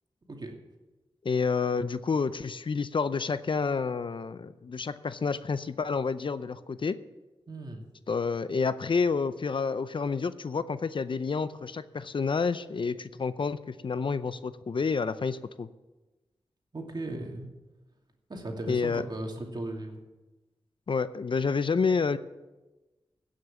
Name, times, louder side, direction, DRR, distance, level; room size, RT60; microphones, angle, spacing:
voice 1, 1.2-7.0 8.1-15.7 18.7-19.0 20.9-22.2, left 5 dB, 55° left, 13 dB, 0.6 m, -29 dB
voice 2, 7.5-7.8 16.7-17.5 18.3-20.0, right 2 dB, 45° right, 2 dB, 2.5 m, -37 dB
16.0 x 6.5 x 7.3 m, 1.1 s
cardioid pair, 55°, 10 cm